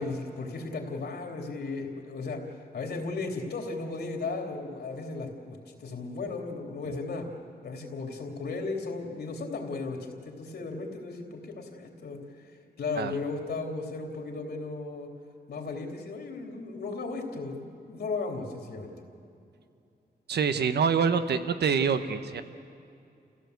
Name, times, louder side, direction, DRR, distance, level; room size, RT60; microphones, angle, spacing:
voice 1, 0.0-2.4 2.7-7.3 7.6-12.5 12.8-15.1 15.5-18.9, left 3 dB, 75° left, 2 dB, 3.3 m, -35 dB
voice 2, 20.3-22.4, right 6 dB, 80° right, 10 dB, 1.1 m, -26 dB
29.5 x 16.0 x 8.2 m, 2.6 s
wide cardioid pair, 175°, 17 cm